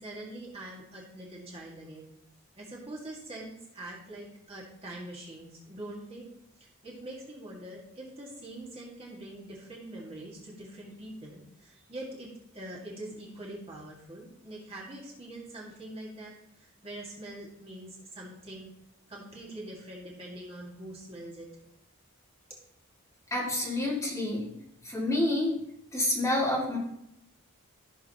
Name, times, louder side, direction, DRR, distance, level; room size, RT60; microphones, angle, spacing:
voice 1, 0.0-2.2 2.6-6.3 6.6-18.7 19.1-21.5, right 1 dB, 25° right, -4 dB, 1.9 m, -44 dB
voice 2, 23.3-24.5 24.8-25.5 25.9-26.8, left 1 dB, 15° left, -5 dB, 2.4 m, -28 dB
14.0 x 6.6 x 2.9 m, 0.80 s
head